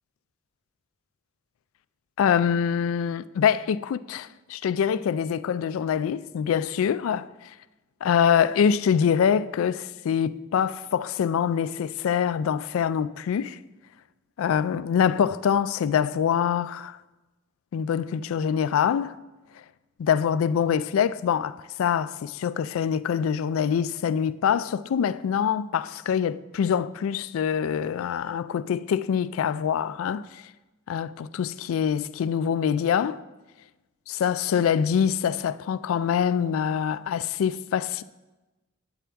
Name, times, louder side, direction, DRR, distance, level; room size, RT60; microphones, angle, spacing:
voice 1, 2.2-7.3 8.0-13.6 14.4-17.0 17.7-19.2 20.0-30.4 30.9-33.2 34.1-38.0, left 8 dB, 90° left, 0.3 m, -25 dB
8.6 x 8.5 x 3.4 m
head